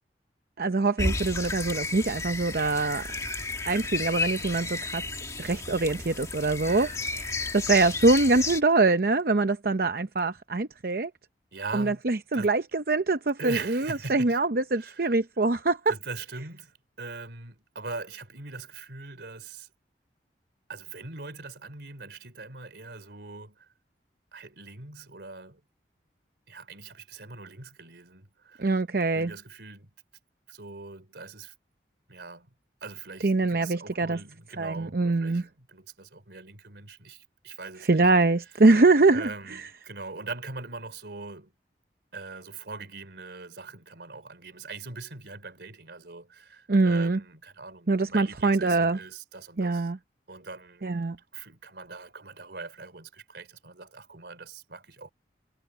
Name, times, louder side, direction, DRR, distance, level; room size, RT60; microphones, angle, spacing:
voice 1, 0.6-3.0 3.7-5.0 5.4-11.1 11.7-15.8 28.6-29.3 33.2-34.2 34.6-35.4 37.8-39.3 46.7-47.2 47.9-49.0 49.6-50.0 50.8-51.2, right 3 dB, 55° right, 0.7 m, -24 dB
Small Creek & Birds, 1.0-8.6, left 3 dB, 20° left, 1.7 m, -32 dB
voice 2, 2.9-3.3 6.7-7.0 11.5-12.0 12.3-12.6 13.4-14.4 14.7-15.2 15.9-19.7 20.7-23.7 24.3-25.6 26.5-28.7 29.1-29.9 30.5-31.5 32.1-32.5 32.8-38.1 39.1-41.5 42.1-49.9 50.3-51.0 51.3-55.1, right 3 dB, 75° right, 3.2 m, -41 dB
head